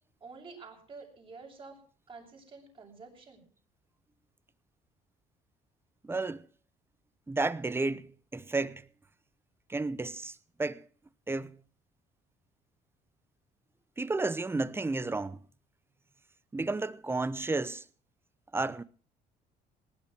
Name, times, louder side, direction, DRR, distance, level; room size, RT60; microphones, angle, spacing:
voice 1, 0.2-1.8 2.1-3.4, right 4 dB, 30° right, 7.0 m, -49 dB
voice 2, 6.0-6.5 7.3-8.8 9.7-10.8 11.3-11.6 14.0-15.4 16.5-17.8 18.5-18.8, right 3 dB, 15° right, 0.8 m, -32 dB
19.0 x 10.5 x 6.1 m
cardioid pair, 110°, 17 cm